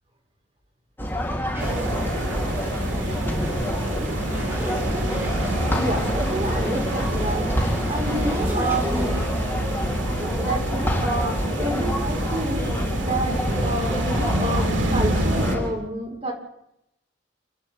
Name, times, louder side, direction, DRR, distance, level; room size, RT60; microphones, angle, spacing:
sound 1, 1.0-15.7, equal, 10° left, 4.2 m, -28 dB
sound 2, 1.5-9.3, equal, 15° right, 4.8 m, -35 dB
sound 3, 1.6-15.6, right 1 dB, 85° right, 2.8 m, -27 dB
voice 1, 5.7-9.2 10.2-12.6 12.9-16.3, right 1 dB, 35° right, 0 dB, 6.0 m, -29 dB
29.5 x 11.0 x 9.0 m, 0.81 s
head